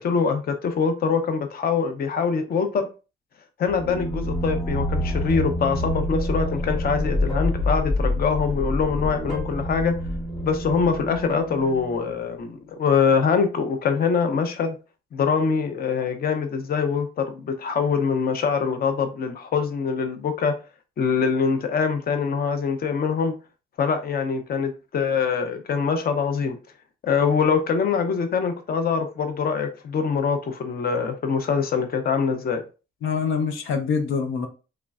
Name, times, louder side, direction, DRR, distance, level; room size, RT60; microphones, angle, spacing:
voice 1, 0.0-2.9 3.6-9.9 10.4-14.8 15.1-20.5 21.0-23.3 23.8-26.6 27.0-32.6, left 5 dB, 50° left, 0.7 m, -24 dB
sound 1, 3.7-12.3, left 1 dB, 25° left, 1.9 m, -27 dB
voice 2, 33.0-34.5, left 5 dB, 85° left, 0.6 m, -25 dB
3.6 x 3.2 x 2.3 m
cardioid pair, 90°, 20 cm